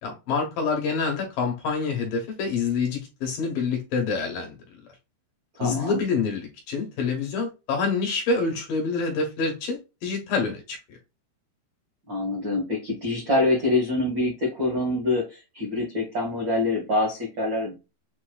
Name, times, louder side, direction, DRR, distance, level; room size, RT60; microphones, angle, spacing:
voice 1, 0.0-4.6 5.6-11.0, left 4 dB, 65° left, 2.5 m, -27 dB
voice 2, 5.6-6.0 12.1-17.7, left 2 dB, 70° right, 1.0 m, -25 dB
7.0 x 2.9 x 2.4 m
omnidirectional pair, 5.1 m